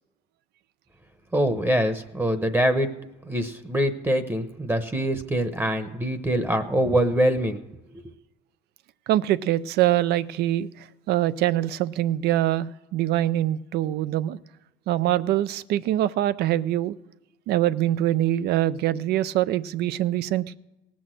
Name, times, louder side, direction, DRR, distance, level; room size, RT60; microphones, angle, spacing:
voice 1, 1.3-2.9 3.3-7.6, equal, 15° right, 10 dB, 0.9 m, -24 dB
voice 2, 9.1-10.7 11.1-14.4 14.9-16.9 17.5-20.6, right 13 dB, 75° right, 17 dB, 0.5 m, -24 dB
17.5 x 6.3 x 7.7 m, 1.0 s
cardioid pair, 110°, 17 cm